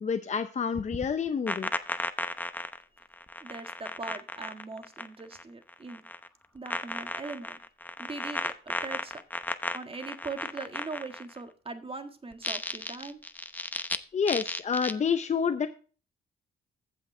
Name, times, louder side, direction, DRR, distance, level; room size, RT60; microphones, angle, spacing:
voice 1, 0.0-1.7 14.1-15.7, left 6 dB, 35° left, 9 dB, 0.7 m, -28 dB
sound 1, 0.7-5.4 5.7-6.3 6.7-11.4 12.3-14.0 14.3-14.9, left 1 dB, 10° left, 0.9 m, -35 dB
voice 2, 3.4-6.0 6.5-7.6 8.0-9.2 9.7-13.2, right 3 dB, 30° right, 7 dB, 1.7 m, -41 dB
15.0 x 5.8 x 3.3 m, 0.37 s
cardioid pair, 90°, 20 cm